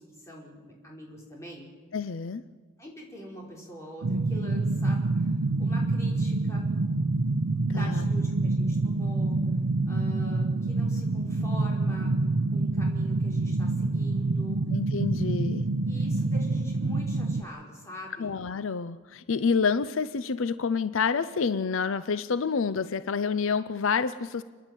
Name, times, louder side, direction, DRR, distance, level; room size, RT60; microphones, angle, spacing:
voice 1, 0.0-1.7 2.8-6.7 7.7-9.4 9.9-12.1 12.5-14.6 15.8-18.4, equal, 15° left, -3 dB, 4.6 m, -44 dB
voice 2, 1.9-2.4 7.7-8.3 14.7-15.7 18.2-24.4, left 5 dB, 70° left, 14 dB, 0.6 m, -28 dB
sound 1, 4.0-17.4, right 2 dB, 85° right, 0.6 m, -27 dB
30.0 x 10.5 x 9.0 m, 1.4 s
head